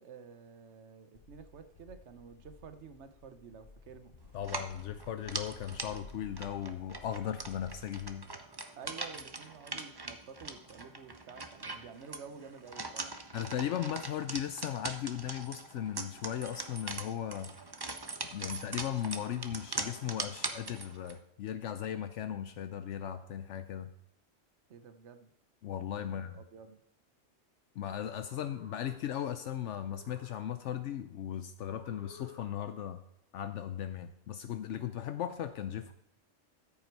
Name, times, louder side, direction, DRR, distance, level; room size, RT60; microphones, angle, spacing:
voice 1, 0.0-4.2 8.8-13.2 24.7-25.3 26.0-26.8, right 6 dB, 70° right, 10 dB, 1.2 m, -51 dB
sound 1, 1.1-8.1, left 4 dB, 45° left, 1.0 m, -55 dB
voice 2, 4.3-8.3 13.3-17.5 18.3-23.9 25.6-26.4 27.8-33.0 33.3-35.9, left 10 dB, 75° left, 10 dB, 0.9 m, -37 dB
sound 2, 4.4-21.2, right 3 dB, 25° right, 0.7 m, -42 dB
sound 3, 28.0-29.4 29.7-31.0 31.7-33.0, left 2 dB, 25° left, 2.1 m, -56 dB
13.5 x 8.1 x 4.6 m, 0.76 s
omnidirectional pair, 1.2 m